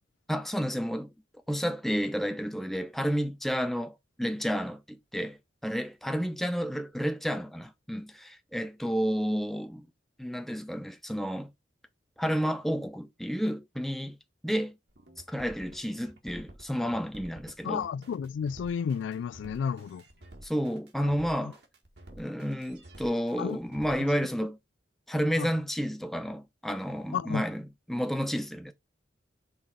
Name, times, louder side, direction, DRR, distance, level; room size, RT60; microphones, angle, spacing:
voice 1, 0.3-1.1 1.5-5.4 5.6-9.9 10.2-11.5 12.2-14.2 14.4-14.8 15.3-17.8 20.4-21.6 22.1-24.6 25.1-28.7, equal, ahead, 0.7 m, -31 dB
sound 1, 14.9-24.2, right 1 dB, 60° right, 1.7 m, -50 dB
voice 2, 17.6-20.0 21.0-21.1 21.4-21.5 23.4-23.6 23.9-24.0 25.4-25.5 27.1-27.5, left 7 dB, 90° left, 0.3 m, -32 dB
5.7 x 3.8 x 4.6 m
head